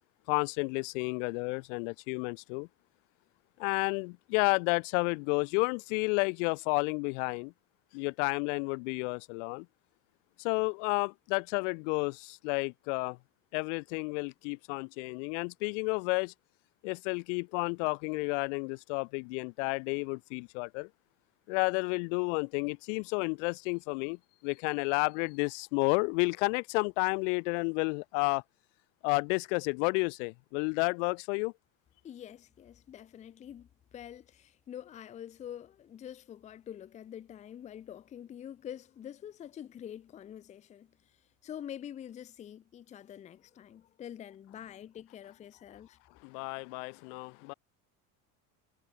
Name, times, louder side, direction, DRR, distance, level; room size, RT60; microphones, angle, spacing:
voice 1, 0.3-2.7 3.6-7.5 7.9-9.7 10.4-13.2 13.5-16.3 16.8-20.9 21.5-28.4 29.0-31.5 46.2-47.5, left 33 dB, 70° left, 1.3 m, -31 dB
voice 2, 32.0-46.0, left 10 dB, 20° left, 0.7 m, -46 dB
cardioid pair, 175°, 37 cm